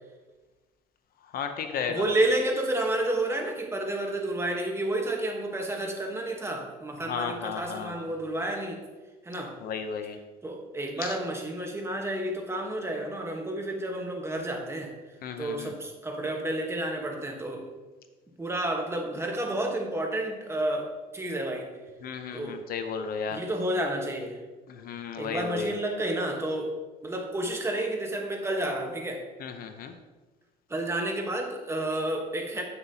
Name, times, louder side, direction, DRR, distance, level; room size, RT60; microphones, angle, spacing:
voice 1, 1.3-2.0 7.1-8.0 9.6-10.2 11.0-11.1 15.2-15.7 22.0-23.4 24.7-25.7 29.4-29.9, left 6 dB, 60° left, 7 dB, 0.7 m, -34 dB
voice 2, 1.9-8.8 9.2-9.5 10.4-14.9 15.4-17.7 18.4-21.7 22.3-22.6 23.3-24.4 25.2-26.7 27.0-29.2 30.7-32.6, right 1 dB, 15° right, 2 dB, 1.2 m, -30 dB
8.5 x 6.9 x 2.8 m, 1.2 s
cardioid pair, 110°, 17 cm